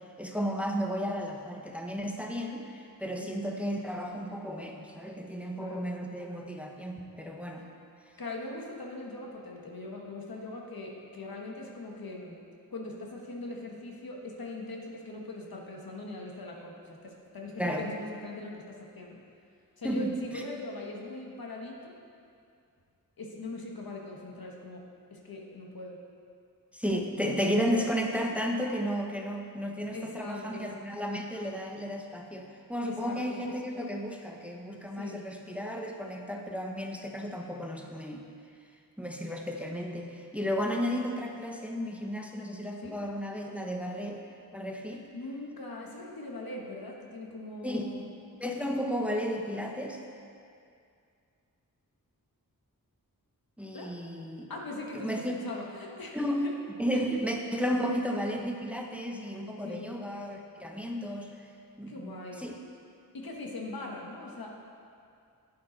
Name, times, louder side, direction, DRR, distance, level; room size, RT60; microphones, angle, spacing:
voice 1, 0.2-7.7 17.6-17.8 19.8-20.4 26.7-38.2 39.0-44.2 44.5-45.1 47.6-47.9 48.4-50.0 53.6-54.5 55.0-55.4 56.1-56.5 56.8-61.3 61.8-62.6, equal, 5° right, 1 dB, 0.9 m, -33 dB
voice 2, 8.2-12.4 12.7-19.2 19.8-22.0 23.2-26.0 27.1-27.9 29.9-30.8 32.8-33.5 35.0-35.2 42.8-43.0 44.9-48.1 53.7-53.9 54.5-56.5 56.9-57.1 59.6-59.9 61.9-62.5 63.1-64.5, left 2 dB, 80° left, -1 dB, 1.4 m, -41 dB
10.5 x 8.7 x 4.0 m, 2.4 s
wide cardioid pair, 70°, 35 cm